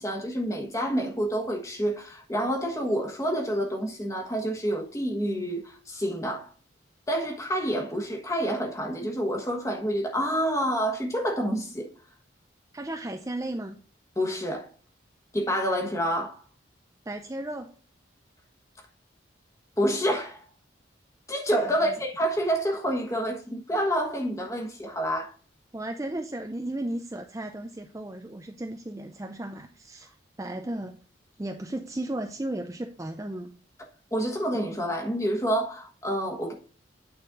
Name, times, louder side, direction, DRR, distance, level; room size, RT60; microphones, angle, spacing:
voice 1, 0.0-6.5 7.1-11.9 14.2-14.7 15.3-16.4 19.8-20.4 21.3-25.3 34.1-36.5, equal, 15° left, 1.3 m, -28 dB
voice 2, 12.7-13.8 17.1-17.7 21.8-22.0 25.7-31.0 31.4-33.5, right 1 dB, 15° right, 0.4 m, -35 dB
8.9 x 4.2 x 3.7 m
head